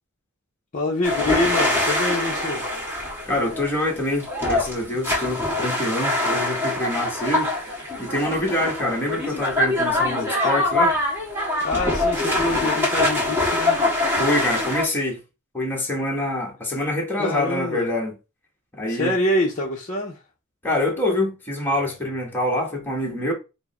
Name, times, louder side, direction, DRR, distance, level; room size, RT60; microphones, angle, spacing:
voice 1, 0.7-2.6 11.6-13.8 17.2-17.9 18.9-20.2, left 1 dB, 40° left, 0.7 m, -25 dB
sound 1, 1.0-14.9, left 2 dB, 10° right, 1.5 m, -24 dB
voice 2, 3.3-7.5 8.0-11.0 14.2-15.2 15.5-18.1 18.8-19.1 20.6-23.3, left 1 dB, 10° left, 1.2 m, -25 dB
4.5 x 2.1 x 4.1 m
head